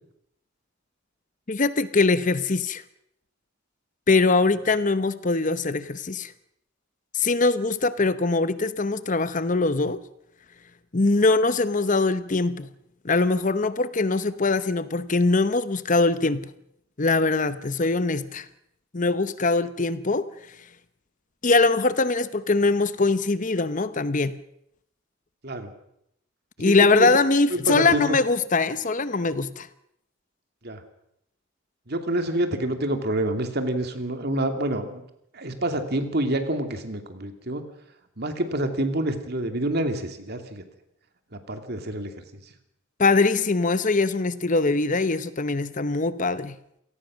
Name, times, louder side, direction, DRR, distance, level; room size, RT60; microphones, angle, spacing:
voice 1, 1.5-2.8 4.1-6.3 7.1-10.0 10.9-12.7 13.0-16.5 17.0-18.5 18.9-20.3 21.4-24.4 26.6-29.7 43.0-46.6, left 3 dB, 40° left, 14 dB, 0.8 m, -22 dB
voice 2, 26.6-27.1 27.5-28.2 30.6-30.8 31.9-35.0 35.3-37.6 38.2-40.6 41.3-42.2, right 1 dB, 50° right, 7 dB, 2.6 m, -27 dB
27.5 x 18.5 x 6.3 m, 0.76 s
head